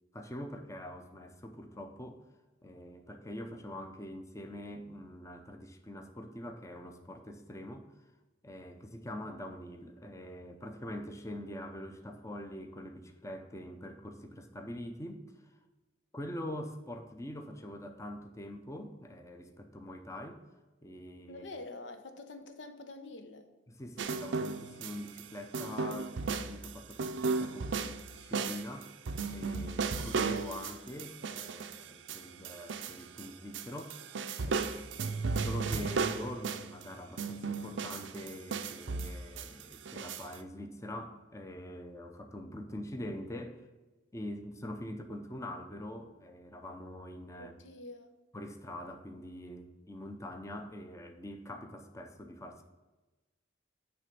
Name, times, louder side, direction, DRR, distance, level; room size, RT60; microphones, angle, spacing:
voice 1, 0.1-2.2 2.6-8.1 8.4-15.6 16.1-20.4 20.8-21.4 23.7-28.9 29.3-34.1 34.4-43.7 44.1-47.5 48.3-52.6, left 1 dB, 15° left, 5 dB, 0.6 m, -44 dB
voice 2, 21.3-23.5 47.4-48.2, left 2 dB, 80° left, 7 dB, 0.9 m, -46 dB
sound 1, 24.0-25.2 25.5-33.3 33.5-36.8 37.2-40.3, right 4 dB, 85° right, 0.6 m, -35 dB
9.5 x 3.4 x 6.8 m, 1.2 s
head